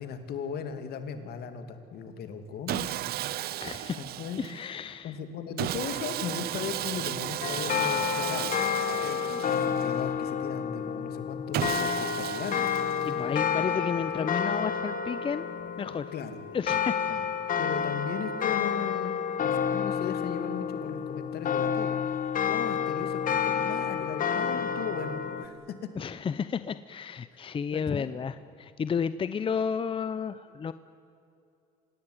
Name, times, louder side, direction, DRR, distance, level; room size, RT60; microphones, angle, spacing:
voice 1, 0.0-2.9 4.0-4.5 5.0-8.6 9.0-12.6 14.1-14.3 16.1-16.4 17.1-17.3 17.6-22.0 22.5-25.6 27.7-28.1, left 7 dB, 70° left, 8 dB, 2.7 m, -37 dB
Sawing, 2.7-4.7 5.6-10.1 11.5-13.4, right 14 dB, 65° right, 0.6 m, -34 dB
voice 2, 3.6-4.0 4.4-5.2 13.0-15.5 15.8-16.1 16.5-17.0 26.0-30.7, left 6 dB, 30° left, 13 dB, 0.7 m, -32 dB
sound 1, 7.4-25.5, left 7 dB, 55° left, 2.0 m, -30 dB
26.5 x 18.5 x 9.9 m, 2.7 s
cardioid pair, 110°, 17 cm